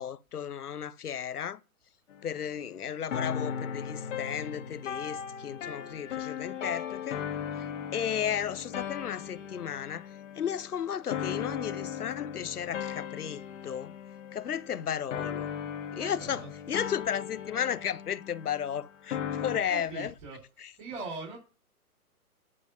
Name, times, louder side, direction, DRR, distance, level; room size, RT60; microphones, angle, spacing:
voice 1, 0.0-1.6 2.2-7.2 7.6-13.9 14.3-15.5 15.9-20.1 20.6-20.7, left 8 dB, 85° left, 0.8 m, -34 dB
sound 1, 2.1-19.6, left 8 dB, 55° left, 1.6 m, -38 dB
voice 2, 15.9-16.5 19.7-20.4 20.8-21.4, right 3 dB, 40° right, 4.1 m, -40 dB
11.0 x 3.9 x 7.6 m
hypercardioid pair, 135°, 45 cm